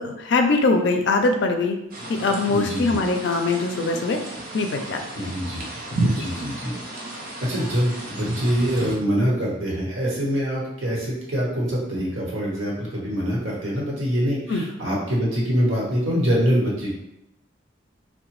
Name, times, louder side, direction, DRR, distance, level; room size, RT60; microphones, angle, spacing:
voice 1, 0.0-1.8 2.1-4.2 4.5-5.3 6.0-6.1 14.5-14.6, left 3 dB, 65° left, 4 dB, 0.4 m, -22 dB
sound 1, 1.9-9.0, right 2 dB, 45° right, 0.5 m, -31 dB
voice 2, 2.5-3.0 5.1-5.6 5.9-6.7 7.4-16.9, equal, 90° right, -4 dB, 1.0 m, -24 dB
2.8 x 2.1 x 3.0 m, 0.83 s
head